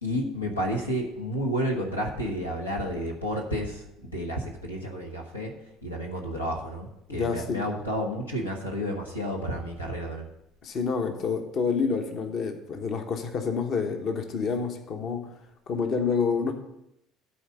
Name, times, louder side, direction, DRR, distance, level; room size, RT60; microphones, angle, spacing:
voice 1, 0.0-10.3, equal, 90° left, 0 dB, 1.0 m, -31 dB
voice 2, 7.1-7.6 10.6-15.3 15.7-16.5, left 5 dB, 45° left, 6 dB, 1.0 m, -28 dB
12.5 x 4.1 x 6.4 m, 0.81 s
figure-of-eight pair, 60°, 0 cm